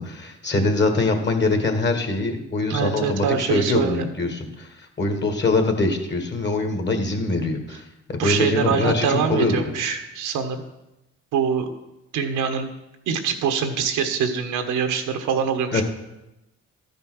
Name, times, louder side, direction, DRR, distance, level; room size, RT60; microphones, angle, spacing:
voice 1, 0.0-4.7 5.0-9.6 15.7-15.8, left 3 dB, 35° left, 5 dB, 1.9 m, -23 dB
voice 2, 2.7-4.1 8.2-10.6 11.3-11.7 12.1-12.7 13.1-15.8, right 6 dB, 90° right, 6 dB, 1.2 m, -24 dB
13.0 x 5.4 x 6.3 m, 0.94 s
cardioid pair, 90°, 30 cm